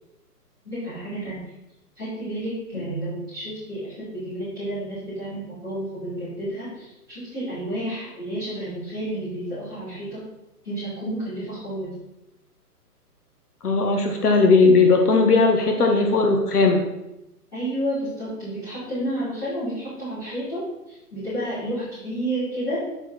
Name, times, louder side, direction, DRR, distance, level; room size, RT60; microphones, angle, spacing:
voice 1, 0.6-1.4 2.0-10.2 10.6-11.9 17.5-20.6 21.1-22.8, right 1 dB, 10° left, -18 dB, 3.1 m, -31 dB
voice 2, 13.6-16.8, left 3 dB, 70° left, 3 dB, 1.2 m, -18 dB
9.6 x 4.5 x 4.2 m, 0.94 s
hypercardioid pair, 175°, 47 cm